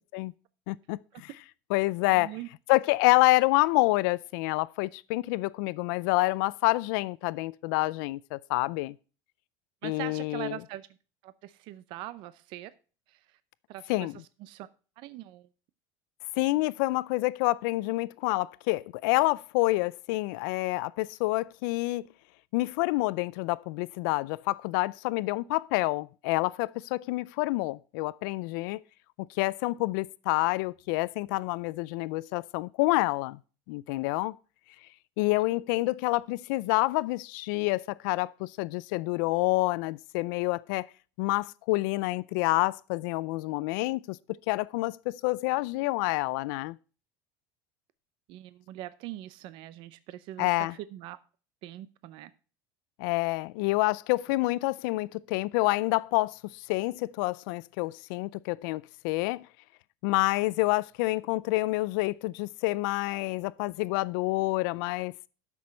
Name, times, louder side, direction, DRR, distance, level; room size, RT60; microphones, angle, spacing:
voice 1, 0.7-1.3 1.7-2.3 2.7-8.9 9.8-10.6 13.9-14.1 16.4-22.1 22.5-28.8 29.2-33.4 33.7-34.4 35.2-40.9 41.2-46.8 50.4-50.7 53.0-59.5 60.0-65.1, left 21 dB, 70° left, 0.4 m, -28 dB
voice 2, 2.1-2.5 9.8-10.9 11.2-12.7 13.1-13.4 13.7-14.7 15.0-15.5 48.3-51.2 51.6-52.3, right 14 dB, 50° right, 0.6 m, -42 dB
12.5 x 6.1 x 4.4 m
cardioid pair, 170°, 11 cm